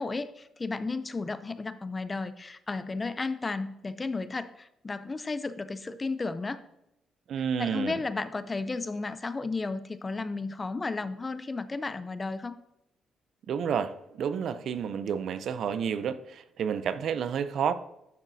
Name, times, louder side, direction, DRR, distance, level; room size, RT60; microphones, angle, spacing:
voice 1, 0.0-6.6 7.6-12.6, left 3 dB, 25° left, 0.4 m, -33 dB
voice 2, 7.3-7.9 13.5-17.7, right 7 dB, 65° right, 0.4 m, -30 dB
10.5 x 6.1 x 2.7 m
cardioid pair, 90°, 0 cm